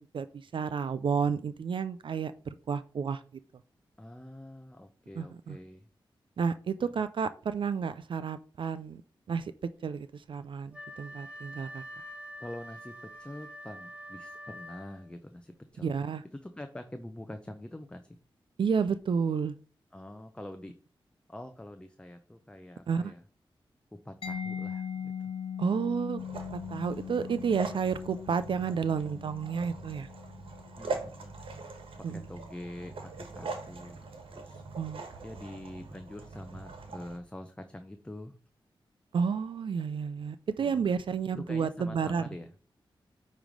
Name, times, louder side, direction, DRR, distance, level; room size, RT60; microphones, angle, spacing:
voice 1, 0.0-2.3 2.7-3.2 5.2-5.6 6.4-9.0 9.3-9.5 9.8-11.8 15.8-16.2 18.6-19.5 22.9-23.1 25.6-26.2 26.7-30.1 32.0-32.2 34.8-35.1 39.1-42.2, right 6 dB, 65° right, 13 dB, 0.4 m, -31 dB
voice 2, 4.0-5.9 6.8-6.9 12.4-15.9 16.2-18.2 19.9-20.7 21.3-23.2 23.9-25.3 30.8-31.3 32.0-34.0 34.3-34.6 35.2-38.4 40.6-40.9 41.5-42.5, left 1 dB, 10° left, 7 dB, 0.6 m, -45 dB
Wind instrument woodwind instrument, 10.7-15.2, equal, 15° right, 1.5 m, -46 dB
Mallet percussion, 24.2-31.8, left 8 dB, 90° left, 1.0 m, -40 dB
sound 1, 26.2-37.2, right 3 dB, 90° right, 1.2 m, -42 dB
8.8 x 3.2 x 5.2 m, 0.39 s
wide cardioid pair, 95°, 9 cm